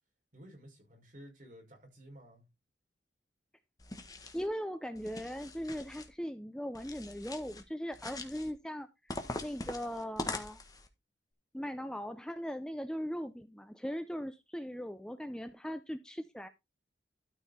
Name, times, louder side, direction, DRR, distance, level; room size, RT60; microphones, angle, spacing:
voice 1, 0.3-2.5, equal, 45° right, 5.4 m, -53 dB
sound 1, 3.8-4.5 5.0-6.1 6.7-7.6 7.9-8.5 9.1-10.9, left 2 dB, 20° left, 1.5 m, -42 dB
voice 2, 4.3-8.9 9.4-10.6 11.5-16.5, equal, 5° left, 0.5 m, -39 dB
12.5 x 5.5 x 4.3 m
head